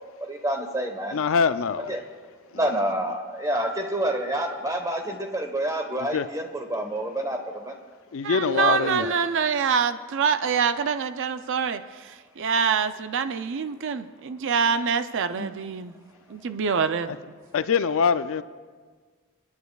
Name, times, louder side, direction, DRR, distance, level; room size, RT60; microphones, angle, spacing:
voice 1, 0.3-1.2 1.8-2.0 2.5-7.7 8.5-9.1 15.4-15.5, right 1 dB, 15° right, 1.2 m, -28 dB
voice 2, 1.1-1.9 6.1-6.3 8.1-9.1 17.5-18.4, left 6 dB, 65° left, 0.4 m, -23 dB
voice 3, 8.2-15.9 16.3-17.1, right 6 dB, 60° right, 0.5 m, -25 dB
29.0 x 10.5 x 2.3 m
head